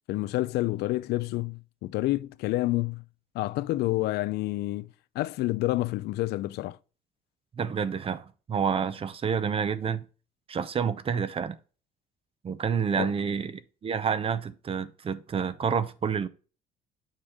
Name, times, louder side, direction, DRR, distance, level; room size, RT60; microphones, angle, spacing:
voice 1, 0.1-3.0 3.3-4.9 5.1-6.8 13.0-13.1, left 18 dB, 75° left, 0.4 m, -28 dB
voice 2, 7.6-10.0 10.5-11.6 12.4-16.3, right 6 dB, 35° right, 0.6 m, -29 dB
7.4 x 5.0 x 3.6 m
cardioid pair, 110°, 17 cm